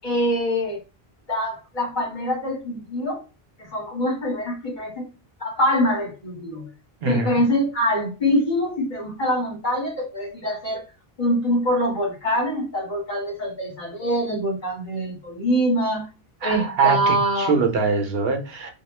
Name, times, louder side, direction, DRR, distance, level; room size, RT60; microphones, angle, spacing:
voice 1, 0.0-0.8 1.3-3.2 3.7-5.0 5.4-6.7 7.1-10.8 11.2-16.1 16.4-17.6, equal, 50° left, 2.0 m, -24 dB
voice 2, 7.0-7.4 16.4-18.7, right 5 dB, 75° right, 1.0 m, -23 dB
3.6 x 2.3 x 3.1 m
omnidirectional pair, 1.0 m